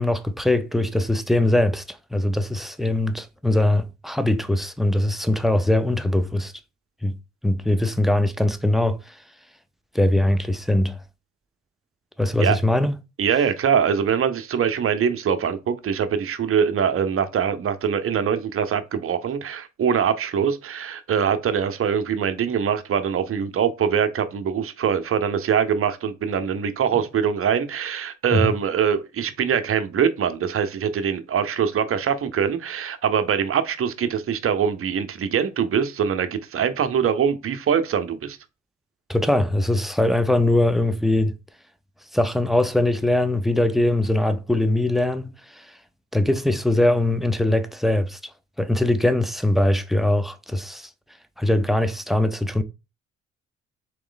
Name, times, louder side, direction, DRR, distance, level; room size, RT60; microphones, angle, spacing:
voice 1, 0.0-6.5 7.0-7.2 7.4-9.2 9.9-11.0 12.2-13.0 28.3-28.5 39.1-41.3 42.1-45.8 46.1-48.3 48.6-50.9 51.4-52.6, left 1 dB, ahead, 0.5 m, -21 dB
voice 2, 13.2-38.4, right 7 dB, 45° right, 0.7 m, -23 dB
3.9 x 3.1 x 3.9 m
cardioid pair, 90°, 30 cm